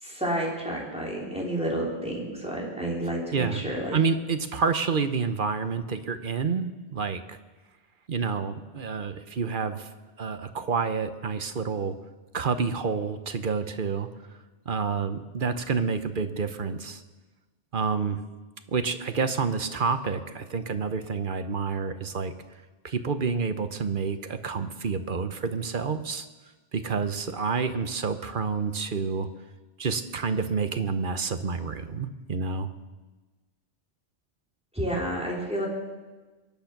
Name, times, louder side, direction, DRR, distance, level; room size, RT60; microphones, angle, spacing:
voice 1, 0.0-4.0 34.7-35.7, right 1 dB, 5° right, -3 dB, 3.7 m, -30 dB
voice 2, 3.3-7.4 8.1-9.9 10.2-12.0 12.3-14.1 14.7-17.0 17.7-18.2 18.7-22.3 22.8-26.3 26.7-29.3 29.8-32.7, right 5 dB, 50° right, 10 dB, 1.0 m, -28 dB
23.0 x 10.5 x 6.0 m, 1.2 s
omnidirectional pair, 1.1 m